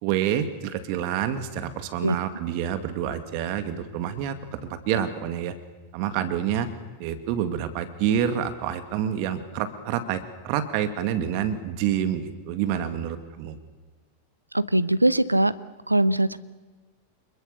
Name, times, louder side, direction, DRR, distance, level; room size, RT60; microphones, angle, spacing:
voice 1, 0.0-4.4 4.7-5.5 5.9-6.7 7.0-13.6, right 9 dB, 45° right, 9 dB, 2.1 m, -27 dB
voice 2, 14.5-15.5 15.9-16.4, right 1 dB, 85° right, 16 dB, 0.9 m, -21 dB
28.0 x 21.5 x 6.9 m, 1.3 s
figure-of-eight pair, 90°, 0 cm